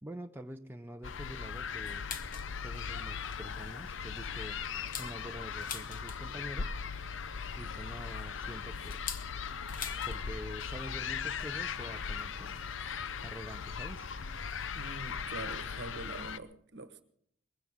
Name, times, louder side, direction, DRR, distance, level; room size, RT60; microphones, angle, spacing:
voice 1, 0.0-2.0 2.6-4.6 5.0-6.8 7.6-9.0 10.1-12.6 13.2-14.1, equal, 10° right, 0.5 m, -46 dB
sound 1, 1.0-16.4, left 6 dB, 65° left, 0.6 m, -39 dB
sound 2, 1.9-2.5 3.0-3.1 3.5-3.7 4.2-6.5 7.6-10.2 10.5-10.6 10.9-11.2 12.1-12.2 13.1-13.2 14.1-14.2 14.6-14.7 14.8-15.0, left 7 dB, 40° left, 1.1 m, -44 dB
voice 2, 14.7-17.0, right 2 dB, 60° right, 1.2 m, -44 dB
21.0 x 16.0 x 3.6 m
head